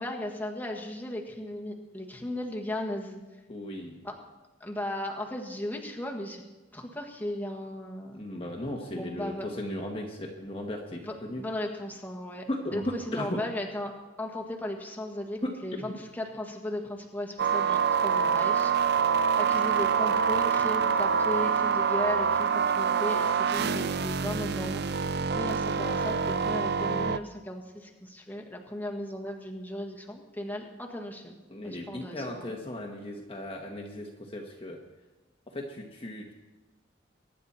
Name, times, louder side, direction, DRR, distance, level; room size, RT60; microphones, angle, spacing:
voice 1, 0.0-3.2 4.0-4.2 4.6-6.4 6.7-8.2 8.9-9.5 11.0-12.4 12.7-31.4 31.6-32.5, left 1 dB, 10° left, 0 dB, 1.7 m, -36 dB
voice 2, 3.5-4.0 8.1-11.4 12.5-13.4 15.4-15.5 31.5-34.8 35.5-36.3, left 1 dB, 30° left, 1 dB, 1.4 m, -36 dB
sound 1, 17.4-27.2, right 6 dB, 55° right, 0.5 m, -26 dB
22.5 x 10.0 x 4.3 m, 1.2 s
head